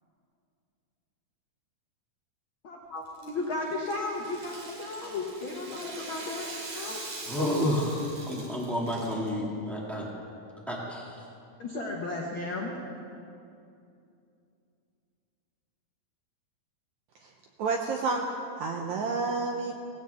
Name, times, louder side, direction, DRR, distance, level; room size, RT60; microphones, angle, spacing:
voice 1, 2.6-7.2 11.6-12.8, left 2 dB, 75° left, -2 dB, 1.1 m, -35 dB
Rattle (instrument), 3.1-9.3, right 3 dB, 60° right, 3.6 m, -43 dB
voice 2, 7.3-8.0 8.3-10.1 10.7-11.1, left 1 dB, ahead, -4 dB, 1.1 m, -30 dB
voice 3, 17.6-19.7, right 4 dB, 75° right, 2 dB, 1.7 m, -30 dB
17.5 x 16.0 x 3.5 m, 2.6 s
omnidirectional pair, 4.1 m